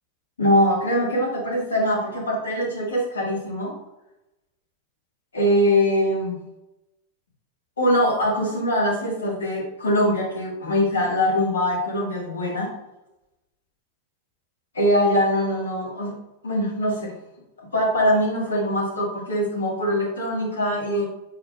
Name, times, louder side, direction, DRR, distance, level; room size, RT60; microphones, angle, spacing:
voice 1, 0.4-3.7 5.3-6.4 7.8-12.7 14.7-16.1 16.4-17.1 17.6-21.0, equal, 70° left, -3 dB, 1.2 m, -22 dB
4.6 x 4.4 x 2.2 m, 0.94 s
figure-of-eight pair, 90°, 0 cm